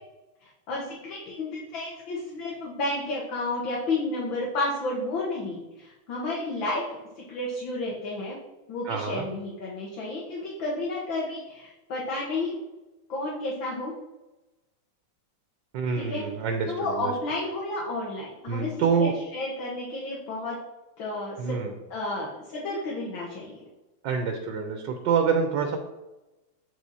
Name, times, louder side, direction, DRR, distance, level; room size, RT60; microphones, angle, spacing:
voice 1, 0.4-6.8 7.2-8.4 8.7-12.5 13.1-13.9 16.0-16.2 16.7-20.6 21.0-21.6 21.9-23.6, left 2 dB, 75° left, -4 dB, 2.1 m, -31 dB
voice 2, 8.9-9.2 15.7-17.1 18.5-19.1 21.4-21.7 24.0-25.8, right 6 dB, 70° right, 5 dB, 1.4 m, -26 dB
8.2 x 4.8 x 4.1 m, 1.0 s
omnidirectional pair, 2.2 m